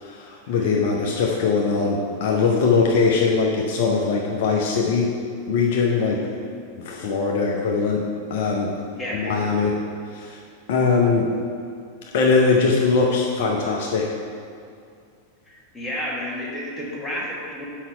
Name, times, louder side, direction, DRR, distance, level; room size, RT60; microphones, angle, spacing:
voice 1, 0.0-5.1 5.5-6.2 6.8-8.7 9.1-9.7 10.1-10.4 10.7-11.3 12.1-14.1, left 4 dB, 50° left, -1 dB, 0.7 m, -21 dB
voice 2, 9.0-9.7 15.5-17.7, equal, 10° left, -4 dB, 1.5 m, -32 dB
5.8 x 5.4 x 5.6 m, 2.3 s
figure-of-eight pair, 90°, 0 cm